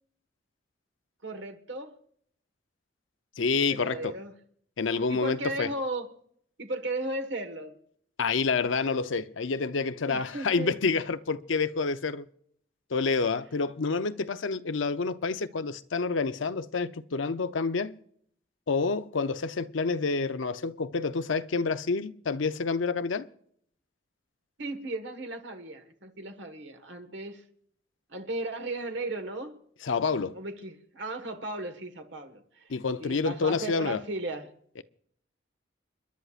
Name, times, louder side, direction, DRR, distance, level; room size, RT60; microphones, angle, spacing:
voice 1, 1.2-2.0 3.7-4.3 5.1-6.1 6.6-7.7 10.1-10.8 24.6-27.4 28.1-29.6 30.3-32.7 33.0-34.5, right 2 dB, 70° right, 1.6 m, -36 dB
voice 2, 3.4-4.2 4.8-5.7 8.2-12.3 12.9-18.0 18.7-23.3 29.8-30.4 32.7-34.0, left 4 dB, 90° left, 0.7 m, -28 dB
29.5 x 11.5 x 2.5 m
head